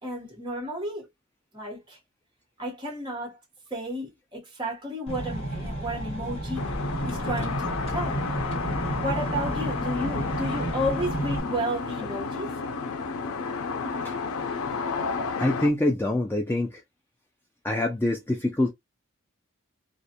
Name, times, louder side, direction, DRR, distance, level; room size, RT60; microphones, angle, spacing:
voice 1, 0.0-1.1 1.5-2.0 2.6-3.4 3.7-6.6 7.0-8.4 9.0-12.5, equal, 20° right, 0.9 m, -32 dB
sound 1, 5.1-11.4, right 1 dB, 30° left, 1.1 m, -31 dB
sound 2, 6.5-15.7, left 4 dB, 85° left, 0.4 m, -32 dB
voice 2, 15.4-16.8 17.6-18.7, left 1 dB, 10° left, 0.3 m, -25 dB
2.5 x 2.1 x 2.7 m
head